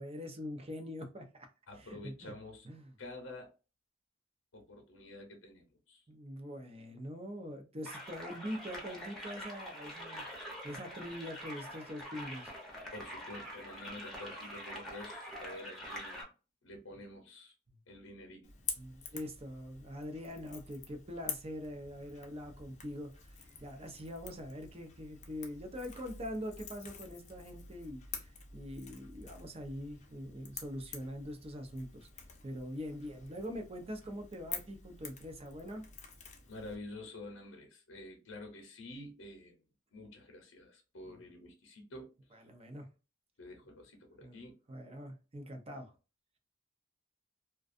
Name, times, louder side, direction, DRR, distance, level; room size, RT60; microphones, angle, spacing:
voice 1, 0.0-1.5 1.8-2.3 2.6-2.9 6.1-10.2 10.6-12.5 17.7-17.8 18.8-32.1 32.4-35.8 41.1-41.2 42.3-42.9 44.2-44.4 44.7-45.9, equal, 30° right, 0.6 m, -43 dB
voice 2, 1.7-2.7 3.0-3.5 4.5-6.0 12.9-16.3 16.6-17.6 17.9-18.5 36.5-39.6 39.9-42.1 43.4-44.5, left 1 dB, 80° left, 0.7 m, -49 dB
sound 1, 7.8-16.2, equal, 5° left, 0.8 m, -45 dB
Crackle / Crack, 18.4-36.8, left 6 dB, 35° left, 0.6 m, -48 dB
2.4 x 2.3 x 2.5 m
head